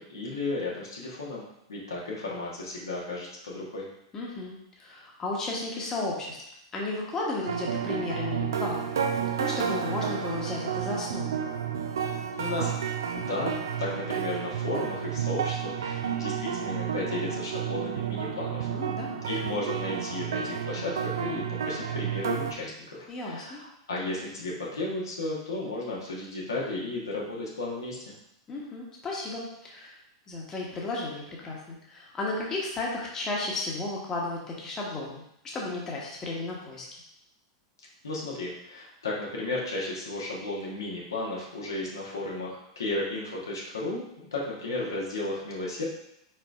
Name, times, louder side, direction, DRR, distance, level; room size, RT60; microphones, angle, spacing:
voice 1, 0.0-1.4 1.7-3.9 12.4-12.7 13.1-18.7 19.3-28.1 38.0-45.8, left 2 dB, 75° left, -4 dB, 1.2 m, -34 dB
voice 2, 4.1-6.4 6.7-8.9 9.4-11.4 18.7-19.2 23.1-23.6 28.5-30.0 30.3-35.2 35.5-36.9, left 2 dB, 25° left, -3 dB, 1.1 m, -34 dB
sound 1, 7.5-22.5, right 8 dB, 70° right, 0.4 m, -31 dB
4.6 x 4.5 x 2.5 m, 0.79 s
figure-of-eight pair, 90°, 2 cm